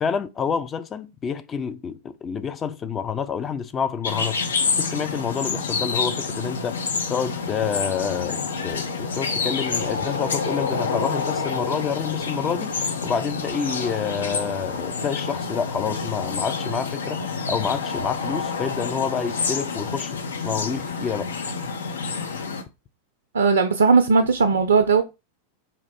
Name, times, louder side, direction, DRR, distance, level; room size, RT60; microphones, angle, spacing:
voice 1, 0.0-4.4 4.8-20.2 20.4-21.3, left 7 dB, 25° left, 0.5 m, -28 dB
sound 1, 4.0-22.6, left 4 dB, 65° left, 0.6 m, -28 dB
voice 2, 23.3-25.0, right 4 dB, 70° right, 0.4 m, -17 dB
4.3 x 2.5 x 4.2 m
figure-of-eight pair, 90°, 0 cm